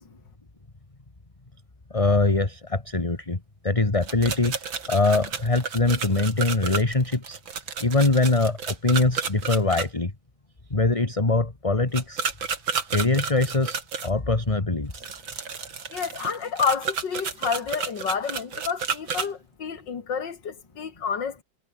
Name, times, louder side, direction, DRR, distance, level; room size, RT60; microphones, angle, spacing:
voice 1, 1.9-4.6 4.9-7.4 7.8-10.1 10.7-12.2 12.9-13.8 14.0-15.0, left 2 dB, 15° left, 1.9 m, -23 dB
sound 1, 4.0-9.9 11.9-14.1 14.9-19.3, right 6 dB, 75° right, 3.2 m, -31 dB
voice 2, 15.9-21.4, left 6 dB, 65° left, 2.6 m, -29 dB
omnidirectional pair, 2.1 m